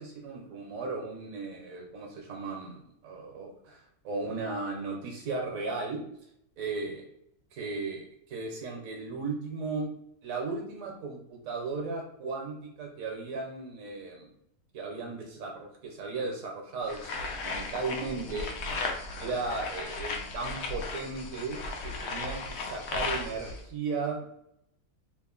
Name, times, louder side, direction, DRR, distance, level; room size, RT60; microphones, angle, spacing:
voice 1, 0.0-6.0 6.6-7.0 7.5-9.9 10.2-14.3 14.7-18.5 19.2-24.3, right 3 dB, 70° right, 1 dB, 1.1 m, -36 dB
sound 1, 16.9-23.6, left 3 dB, 65° left, 0.7 m, -36 dB
2.9 x 2.5 x 3.7 m, 0.76 s
omnidirectional pair, 1.6 m